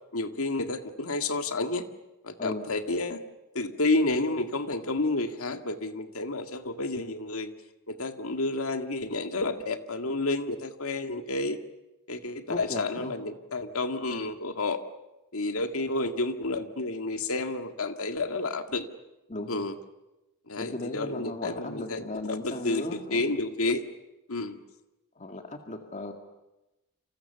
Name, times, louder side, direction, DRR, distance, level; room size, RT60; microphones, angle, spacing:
voice 1, 0.1-1.8 2.2-3.3 3.5-7.5 7.9-11.6 12.1-14.8 15.3-18.9 19.5-19.7 20.5-22.0 22.3-23.8 24.3-24.6, left 2 dB, 75° left, 7 dB, 2.1 m, -30 dB
voice 2, 12.5-13.1 19.3-19.6 20.6-23.2 25.2-26.1, left 2 dB, 35° left, 4 dB, 2.0 m, -36 dB
29.5 x 27.5 x 6.9 m, 0.99 s
head